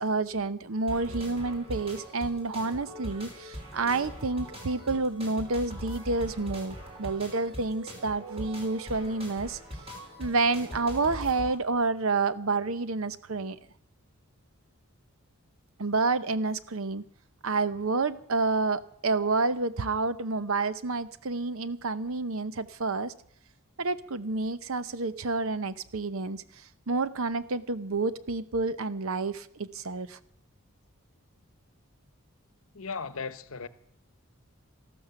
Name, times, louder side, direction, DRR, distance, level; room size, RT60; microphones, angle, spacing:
voice 1, 0.0-9.6 10.2-13.6 15.8-17.0 17.4-23.1 23.8-30.2, right 3 dB, 65° right, 0.8 m, -29 dB
sound 1, 0.9-11.6, equal, 25° right, 3.7 m, -41 dB
voice 2, 32.7-33.7, left 5 dB, 65° left, 0.9 m, -36 dB
13.5 x 12.5 x 7.0 m
head